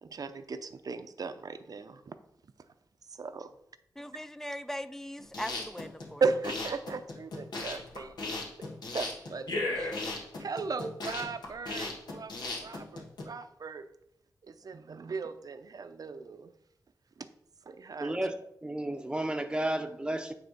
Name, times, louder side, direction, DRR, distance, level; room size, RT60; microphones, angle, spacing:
voice 1, 0.0-2.2 3.2-3.5 6.2-8.3 8.9-13.8 14.4-16.5 17.2-17.3 17.7-18.2, right 4 dB, 60° right, 0.6 m, -37 dB
voice 2, 4.0-6.2, equal, 5° left, 0.4 m, -39 dB
sound 1, 5.2-13.2, left 2 dB, 90° left, 1.4 m, -36 dB
voice 3, 18.0-20.3, right 1 dB, 15° right, 0.8 m, -32 dB
9.2 x 3.4 x 5.2 m
wide cardioid pair, 85°, 7 cm